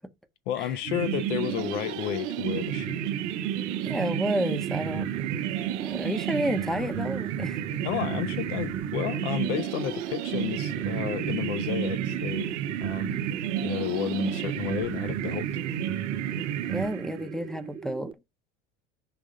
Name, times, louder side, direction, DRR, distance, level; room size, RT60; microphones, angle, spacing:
voice 1, 0.5-3.0 7.8-13.2 13.6-15.5, left 11 dB, 70° left, 1.0 m, -32 dB
sound 1, 0.8-18.1, right 7 dB, 15° right, 0.4 m, -41 dB
sound 2, 0.9-17.5, right 10 dB, 70° right, 0.8 m, -31 dB
voice 2, 3.8-5.2 5.8-7.6 16.7-18.1, equal, ahead, 0.8 m, -30 dB
6.0 x 3.6 x 5.0 m
hypercardioid pair, 70°, 37 cm